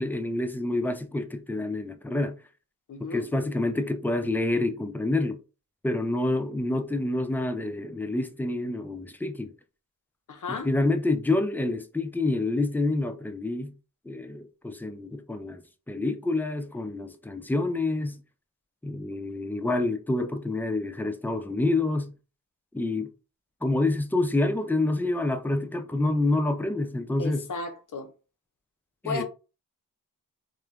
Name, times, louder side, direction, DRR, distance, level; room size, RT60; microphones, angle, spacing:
voice 1, 0.0-2.4 3.0-5.4 5.8-9.5 10.5-13.7 14.1-15.6 15.9-18.2 18.8-22.1 22.7-23.1 23.6-27.5 29.0-29.2, left 2 dB, 5° left, 0.4 m, -27 dB
voice 2, 2.9-3.3 10.3-10.7 27.2-28.1 29.0-29.2, left 4 dB, 60° left, 0.7 m, -34 dB
3.1 x 2.1 x 2.3 m
cardioid pair, 45°, 35 cm